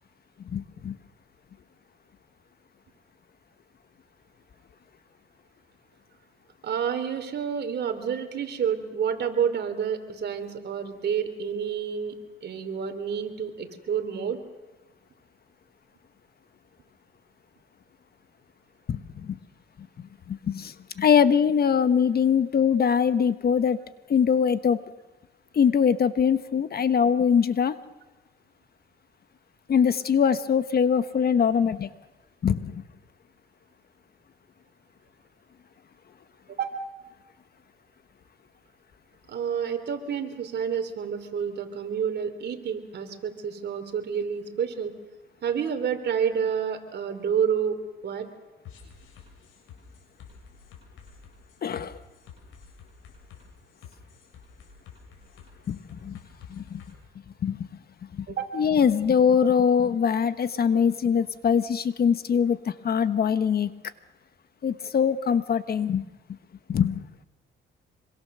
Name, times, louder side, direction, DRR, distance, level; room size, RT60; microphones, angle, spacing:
voice 1, 0.5-0.9 18.9-19.4 20.0-23.8 24.1-24.8 25.5-27.8 29.7-31.9 32.4-32.8 51.6-51.9 55.7-56.2 56.5-56.8 57.4-57.7 58.2-58.3 58.5-63.7 64.6-66.0 66.7-67.0, left 7 dB, 50° left, 12 dB, 1.2 m, -23 dB
voice 2, 6.6-12.1 12.4-14.4 36.5-36.8 39.3-44.9 45.4-47.8 48.0-48.3 58.3-58.6, right 7 dB, 60° right, 7 dB, 3.3 m, -29 dB
sound 1, 48.6-56.9, left 7 dB, 90° left, 6.8 m, -49 dB
25.5 x 23.5 x 6.8 m, 1.1 s
cardioid pair, 90°, 20 cm